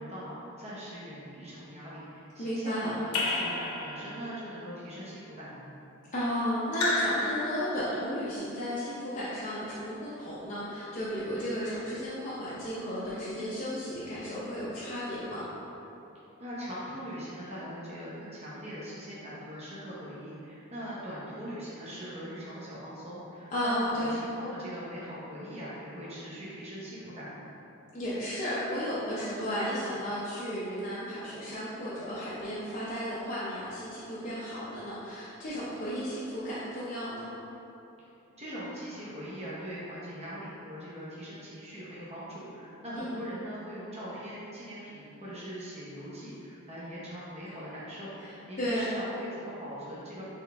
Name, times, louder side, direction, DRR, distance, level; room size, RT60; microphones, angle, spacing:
voice 1, 0.0-5.7 16.4-27.5 38.4-50.2, equal, 30° right, -8 dB, 0.9 m, -41 dB
voice 2, 2.4-2.9 6.1-15.4 23.5-24.1 27.9-37.3 42.9-43.2 48.2-48.9, equal, 35° left, -10 dB, 0.6 m, -34 dB
Raindrop / Drip, 3.1-4.4 6.7-8.1, left 2 dB, 75° left, 0.7 m, -31 dB
4.0 x 3.6 x 3.3 m, 2.9 s
head